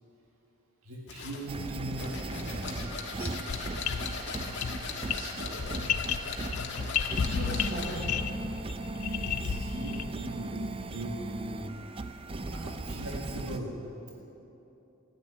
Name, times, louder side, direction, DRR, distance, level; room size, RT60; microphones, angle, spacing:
voice 1, 0.8-2.8 9.0-11.7 12.5-13.8, right 1 dB, 75° right, -2 dB, 1.8 m, -40 dB
sound 1, 1.1-8.1, left 4 dB, 55° left, 1.7 m, -39 dB
sound 2, 1.5-13.6, right 2 dB, 25° right, 0.5 m, -38 dB
sound 3, 3.5-10.2, left 7 dB, 85° left, 0.6 m, -33 dB
voice 2, 5.1-5.9 7.3-8.5, right 1 dB, 40° right, -3 dB, 2.8 m, -40 dB
14.5 x 9.0 x 9.7 m, 3.0 s
head